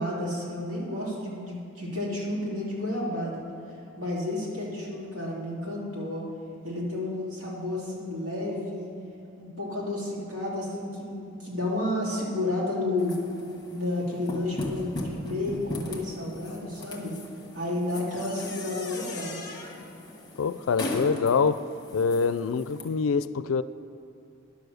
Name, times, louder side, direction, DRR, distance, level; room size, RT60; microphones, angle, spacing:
voice 1, 0.0-3.4 4.0-6.2 6.6-8.9 9.4-13.2 13.7-17.2 17.5-19.4, left 1 dB, 70° right, -5 dB, 2.9 m, -31 dB
sound 1, 13.0-22.8, left 2 dB, 20° left, 1.3 m, -38 dB
voice 2, 20.4-21.6 21.9-23.6, left 5 dB, 80° left, 15 dB, 0.4 m, -25 dB
10.5 x 6.9 x 6.4 m, 2.7 s
head